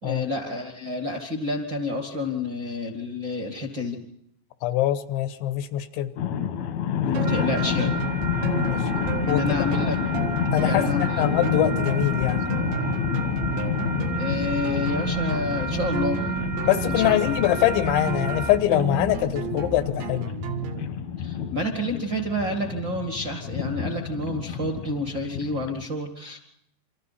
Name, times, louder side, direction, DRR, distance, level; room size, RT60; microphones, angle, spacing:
voice 1, 0.0-4.0 7.0-7.9 9.2-10.0 10.6-11.2 14.2-16.3 16.8-17.2 21.2-26.4, left 2 dB, 40° right, 2 dB, 1.6 m, -29 dB
voice 2, 4.6-6.1 8.7-8.9 9.3-9.4 9.8-9.9 10.5-12.4 16.6-20.3, left 13 dB, 85° left, 10 dB, 3.4 m, -24 dB
sound 1, 6.2-25.9, left 8 dB, 65° left, 1.8 m, -29 dB
sound 2, 7.1-20.9, right 6 dB, 80° right, 3.8 m, -32 dB
sound 3, 7.2-18.6, right 4 dB, 10° left, 0.7 m, -34 dB
28.5 x 25.5 x 4.2 m, 0.72 s
omnidirectional pair, 5.1 m